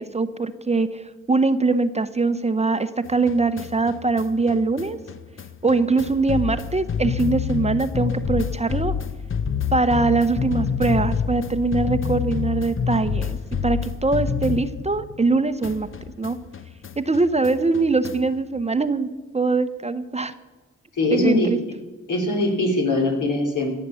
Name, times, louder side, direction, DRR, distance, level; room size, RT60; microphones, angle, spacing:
voice 1, 0.0-5.0 5.6-8.9 9.7-13.4 13.6-15.9 16.2-16.4 17.0-19.1 19.3-20.3 21.1-21.6, right 3 dB, 20° right, 11 dB, 0.8 m, -22 dB
sound 1, 3.1-15.3 15.6-18.4, left 7 dB, 40° left, 0.8 m, -28 dB
voice 2, 21.0-21.5 22.1-23.7, left 2 dB, 75° left, 1 dB, 3.4 m, -22 dB
17.0 x 7.6 x 7.0 m, 1.3 s
cardioid pair, 65°, 31 cm